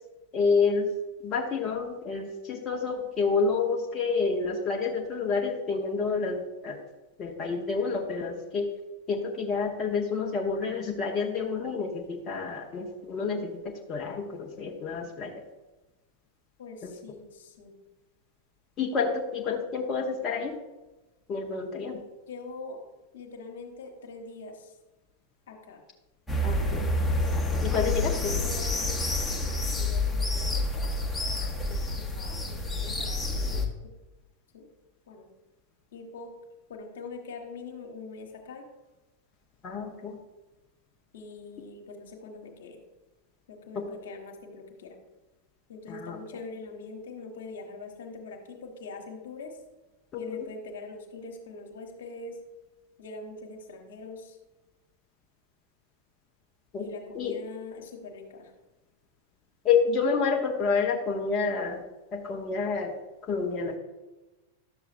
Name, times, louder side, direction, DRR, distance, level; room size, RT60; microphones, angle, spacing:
voice 1, 0.3-0.9 1.2-6.8 7.2-8.7 9.1-15.3 16.8-16.9 18.8-20.6 21.3-22.0 26.4-26.9 27.6-28.4 31.4-31.8 39.6-40.2 43.7-43.9 45.9-46.2 50.1-50.2 56.7-56.9 57.1-57.4 59.6-61.8 62.1-62.9 63.2-63.8, left 5 dB, 30° left, 0 dB, 0.9 m, -29 dB
voice 2, 16.6-17.7 22.3-22.8 23.1-24.8 25.5-25.8 27.8-28.2 28.4-29.0 29.6-30.6 31.9-33.6 34.5-34.7 35.1-35.3 35.9-36.3 36.7-38.6 41.1-42.8 43.5-45.0 45.7-49.6 50.1-52.4 53.0-54.4 56.8-58.5, left 3 dB, 60° left, 2 dB, 1.4 m, -43 dB
sound 1, 26.3-33.7, left 2 dB, 10° left, 1.1 m, -28 dB
11.5 x 6.9 x 2.5 m, 1.1 s
figure-of-eight pair, 90°, 0 cm